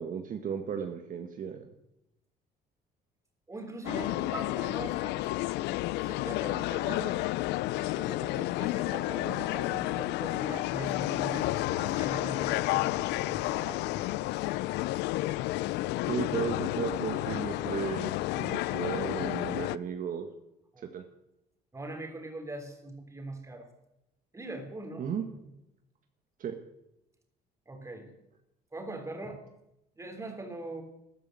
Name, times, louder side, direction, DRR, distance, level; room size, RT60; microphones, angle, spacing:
voice 1, 0.0-1.6 16.1-20.3 20.9-21.0 25.0-25.2 26.4-26.5, right 7 dB, 55° right, 6 dB, 1.6 m, -34 dB
voice 2, 3.5-5.4 6.0-7.2 7.9-14.3 20.7-20.8 21.7-23.7 24.3-25.1 27.7-28.1 28.7-29.4 30.0-30.8, right 2 dB, 15° right, 5 dB, 3.5 m, -41 dB
sound 1, 3.8-19.8, left 18 dB, 85° left, 0.5 m, -31 dB
13.5 x 12.5 x 7.8 m, 0.85 s
cardioid pair, 110°, 17 cm